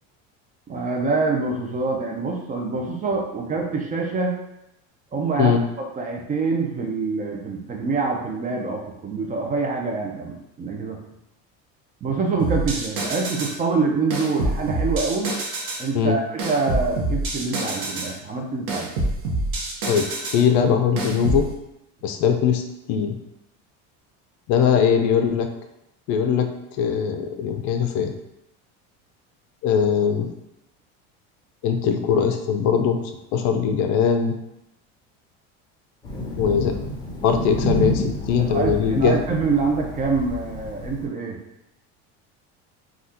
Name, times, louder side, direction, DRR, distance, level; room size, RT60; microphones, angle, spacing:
voice 1, 0.7-4.3 5.1-5.5 6.0-11.0 12.0-15.4 15.8-18.9 38.4-41.4, right 4 dB, 25° right, 0 dB, 0.4 m, -25 dB
sound 1, 12.4-13.6 14.1-15.9 16.4-18.2 18.7-20.4 21.0-21.5, right 2 dB, 70° right, 0.8 m, -26 dB
voice 2, 19.9-21.5 22.0-22.6 22.9-23.2 24.5-25.5 26.1-26.5 26.8-28.1 29.6-30.3 31.6-33.0 33.3-34.4 36.4-36.8 37.2-39.2, left 7 dB, 60° left, 6 dB, 0.4 m, -20 dB
Thunder, 36.0-41.0, equal, 15° left, 1.0 m, -29 dB
2.7 x 2.3 x 3.5 m, 0.84 s
cardioid pair, 130°, 34 cm